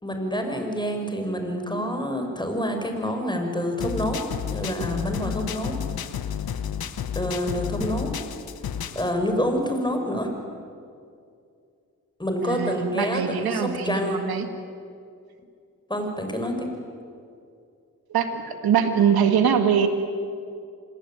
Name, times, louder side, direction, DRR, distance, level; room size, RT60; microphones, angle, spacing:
voice 1, 0.0-4.2 4.5-5.7 7.1-8.1 8.9-10.3 12.2-14.2 15.9-16.7, equal, 10° left, 4 dB, 6.3 m, -27 dB
sound 1, 3.8-9.1, left 8 dB, 80° left, 1.2 m, -31 dB
voice 2, 12.4-14.5 18.1-19.9, right 7 dB, 85° right, 8 dB, 2.1 m, -23 dB
26.0 x 20.0 x 9.1 m, 2.4 s
cardioid pair, 50°, 36 cm